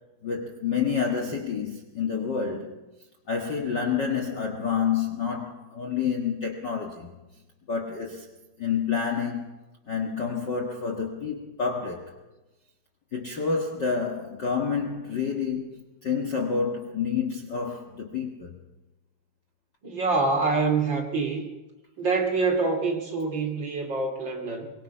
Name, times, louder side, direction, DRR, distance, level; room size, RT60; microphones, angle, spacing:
voice 1, 0.2-2.7 3.3-7.1 7.7-8.3 8.6-9.6 9.9-12.2 13.1-18.5, left 6 dB, 80° left, 0.9 m, -28 dB
voice 2, 19.8-21.5 22.0-24.7, right 4 dB, 30° right, 2.8 m, -26 dB
24.0 x 22.0 x 5.7 m
omnidirectional pair, 4.8 m